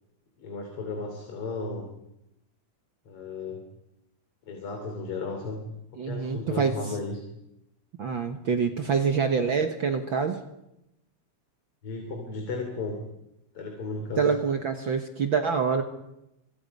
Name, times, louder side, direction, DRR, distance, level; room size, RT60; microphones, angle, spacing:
voice 1, 0.4-2.0 3.1-3.6 4.5-5.7 5.9-7.2 11.8-13.0 13.5-14.3, left 3 dB, 45° left, 3 dB, 3.8 m, -34 dB
voice 2, 6.0-6.7 8.0-10.4 14.2-15.8, right 6 dB, 55° right, 6 dB, 1.6 m, -26 dB
30.0 x 25.5 x 5.4 m, 0.88 s
omnidirectional pair, 3.5 m